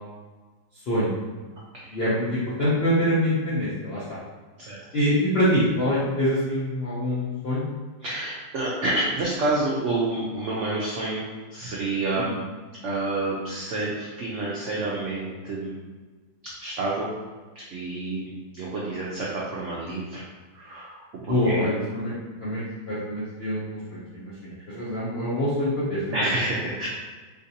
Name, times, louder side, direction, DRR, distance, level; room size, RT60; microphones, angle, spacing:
voice 1, 0.7-1.1 1.9-4.2 4.9-7.6 12.2-12.4 21.3-26.3, equal, 70° left, -8 dB, 0.5 m, -25 dB
voice 2, 8.0-11.2 11.5-12.4 12.8-15.8 16.6-17.1 17.7-20.2 20.5-21.0 21.2-21.6 26.1-26.9, right 2 dB, 85° right, -5 dB, 0.6 m, -28 dB
3.7 x 2.5 x 2.7 m, 1.3 s
omnidirectional pair, 1.9 m